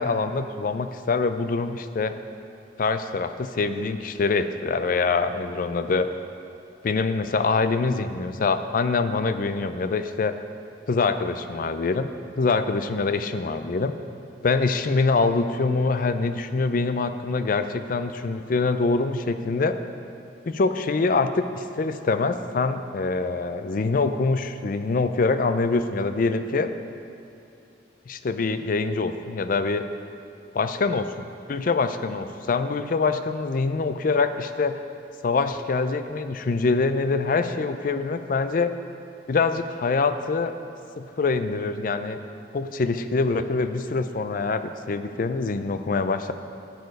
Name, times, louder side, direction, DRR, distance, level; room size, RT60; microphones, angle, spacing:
voice 1, 0.0-2.1 2.8-6.1 6.8-10.3 10.9-12.1 12.4-13.9 14.4-19.8 20.5-26.7 28.1-29.8 30.5-34.8 35.2-38.7 39.3-40.5 41.0-42.2 42.5-46.3, left 4 dB, 45° left, 10 dB, 0.4 m, -24 dB
10.5 x 6.9 x 5.2 m, 2.7 s
head